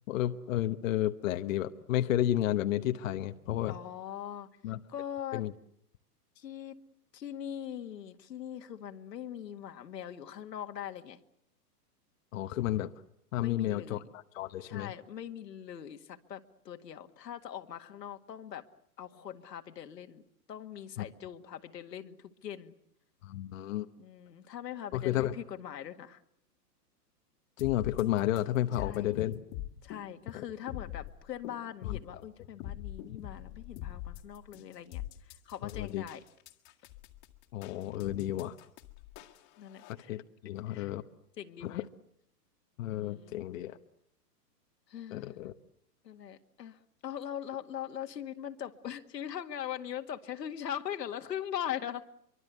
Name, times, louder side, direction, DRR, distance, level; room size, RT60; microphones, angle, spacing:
voice 1, 0.1-3.8 4.6-4.8 5.3-5.5 12.3-12.9 13.3-14.9 21.0-21.1 23.2-23.9 24.9-25.3 27.6-29.4 30.3-30.5 31.8-32.0 35.6-36.1 37.5-38.6 40.1-41.0 41.6-41.8 42.8-43.8 45.1-45.5, left 13 dB, 50° left, 8 dB, 1.1 m, -32 dB
voice 2, 3.7-4.5 4.9-5.4 6.4-6.8 7.1-11.2 13.4-14.0 14.7-18.7 19.0-20.2 20.5-22.7 24.0-26.2 28.8-29.2 29.8-35.0 35.5-36.2 37.9-38.4 39.6-40.2 40.7-40.9 41.4-41.9 42.9-43.4 44.9-45.4 46.0-52.1, left 10 dB, 85° left, 7 dB, 2.0 m, -41 dB
sound 1, 27.6-39.9, left 14 dB, 35° left, 1.8 m, -43 dB
25.0 x 24.0 x 8.2 m, 0.73 s
hypercardioid pair, 150°, 49 cm